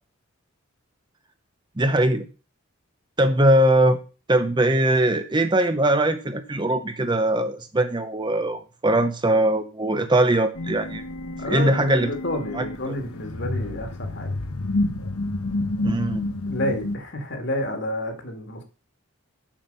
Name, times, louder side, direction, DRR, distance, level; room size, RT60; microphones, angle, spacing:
voice 1, 1.8-2.3 3.2-4.0 4.3-11.0 11.5-12.1 12.5-12.6 15.8-16.3, right 1 dB, 20° right, 9 dB, 0.6 m, -21 dB
sound 1, 10.5-17.0, left 2 dB, 90° left, 1.0 m, -29 dB
voice 2, 11.4-14.3 16.5-18.6, left 1 dB, 50° left, 5 dB, 2.0 m, -30 dB
7.4 x 7.2 x 5.4 m, 0.34 s
head